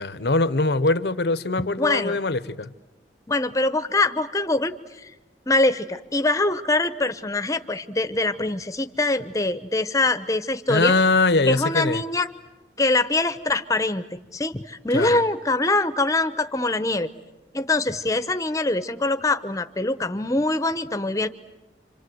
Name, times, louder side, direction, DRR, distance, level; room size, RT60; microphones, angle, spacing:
voice 1, 0.0-2.7 10.7-12.0 14.9-15.2, left 3 dB, 70° left, 0.9 m, -22 dB
voice 2, 1.8-2.2 3.3-4.7 5.5-10.9 11.5-12.3 12.8-14.0 14.3-17.1 17.5-21.3, left 2 dB, 20° left, 0.9 m, -23 dB
28.0 x 26.5 x 7.9 m
head